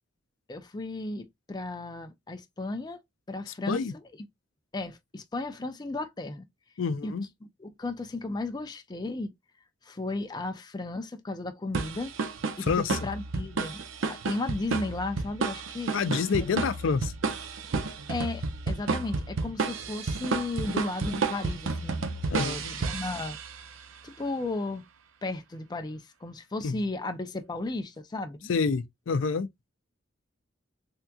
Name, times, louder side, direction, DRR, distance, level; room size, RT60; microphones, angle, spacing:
voice 1, 0.5-3.0 3.3-4.0 4.7-6.5 7.0-7.1 7.6-9.3 9.8-12.1 12.6-15.9 16.4-16.5 16.8-16.9 18.1-22.0 22.4-23.4 24.0-24.8 25.2-28.5, left 2 dB, 20° left, 0.5 m, -34 dB
voice 2, 3.5-3.9 6.8-7.3 12.7-13.0 15.9-17.1 22.3-22.7 26.6-26.8 28.5-29.5, left 5 dB, 75° left, 0.4 m, -28 dB
sound 1, 11.7-23.7, right 4 dB, 85° right, 0.6 m, -31 dB
3.4 x 2.8 x 2.3 m
head